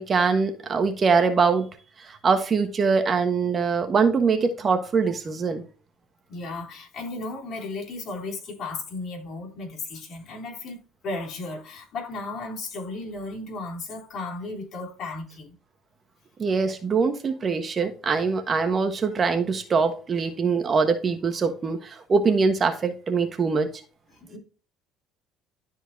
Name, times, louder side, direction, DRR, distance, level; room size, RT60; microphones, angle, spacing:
voice 1, 0.0-1.7 2.0-5.6 16.4-23.7, right 5 dB, 35° right, 1.2 m, -23 dB
voice 2, 6.3-10.8 11.0-15.6 24.2-24.4, left 3 dB, 55° left, 3.4 m, -35 dB
12.5 x 4.5 x 2.7 m
cardioid pair, 105°, 0 cm